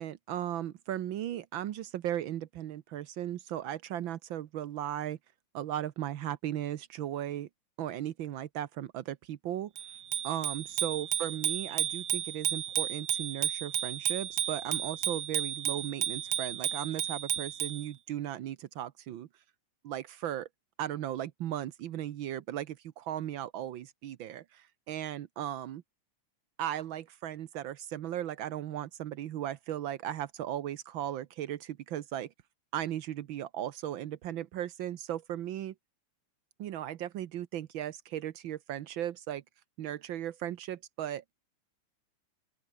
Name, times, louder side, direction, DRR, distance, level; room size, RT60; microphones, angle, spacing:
voice 1, 0.0-5.2 5.5-7.5 7.8-9.7 10.2-19.3 19.8-20.5 20.8-25.8 26.6-32.3 32.7-35.7 36.6-39.4 39.8-41.2, right 11 dB, 85° right, 1.1 m, -36 dB
Bicycle bell, 9.8-17.8, right 10 dB, 55° right, 1.7 m, -33 dB
open air
omnidirectional pair, 3.4 m